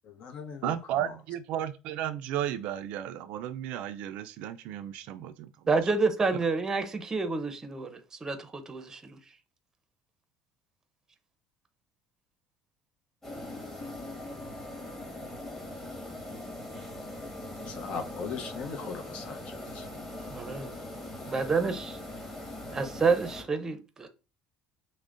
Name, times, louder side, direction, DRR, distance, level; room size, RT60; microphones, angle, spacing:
voice 1, 0.0-1.1 17.6-19.9 20.2-20.3 21.3-21.5, left 5 dB, 55° left, 0.7 m, -40 dB
voice 2, 0.6-5.5 6.3-6.4, right 11 dB, 70° right, 0.3 m, -34 dB
voice 3, 5.7-9.2 20.3-20.7 21.3-22.0 22.7-24.1, right 4 dB, 20° right, 0.6 m, -29 dB
sound 1, 13.2-23.4, left 1 dB, 15° left, 1.5 m, -41 dB
6.0 x 2.1 x 2.5 m
cardioid pair, 110°, 2 cm